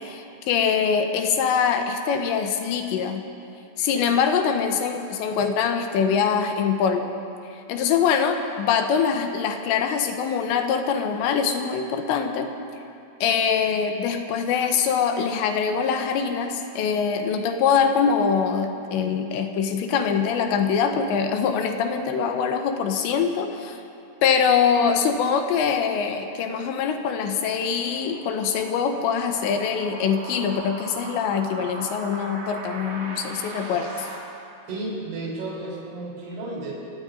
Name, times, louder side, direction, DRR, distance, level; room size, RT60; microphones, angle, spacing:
voice 1, 0.0-3.2 3.8-7.1 7.4-12.5 13.2-23.8 24.2-34.1, left 6 dB, 85° left, 5 dB, 3.0 m, -23 dB
sound 1, 26.2-34.1, right 2 dB, 45° right, 4.1 m, -40 dB
voice 2, 34.7-36.7, right 2 dB, 75° right, -4 dB, 6.0 m, -32 dB
27.0 x 17.0 x 2.6 m, 2.6 s
omnidirectional pair, 5.3 m